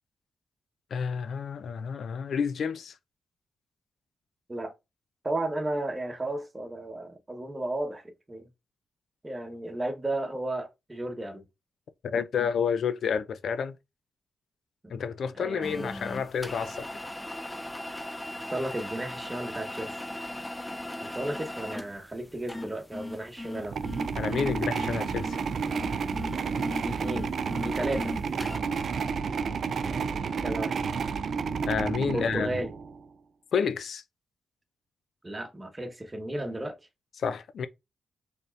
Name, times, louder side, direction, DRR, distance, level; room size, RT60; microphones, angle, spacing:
voice 1, 0.9-2.9 12.0-13.8 14.9-16.9 24.2-25.4 31.7-32.5 33.5-34.0 37.2-37.7, left 6 dB, 70° left, 0.5 m, -30 dB
voice 2, 5.2-8.5 9.2-11.4 14.8-14.9 15.3-15.9 18.5-20.0 21.0-23.8 26.8-27.3 27.6-28.1 29.8-30.8 32.0-32.7 35.2-36.8, right 1 dB, 20° right, 1.2 m, -34 dB
sound 1, 15.6-28.6, left 1 dB, 10° left, 0.4 m, -38 dB
sound 2, 23.6-33.0, right 5 dB, 65° right, 0.4 m, -31 dB
4.1 x 3.5 x 2.4 m
cardioid pair, 65°, 0 cm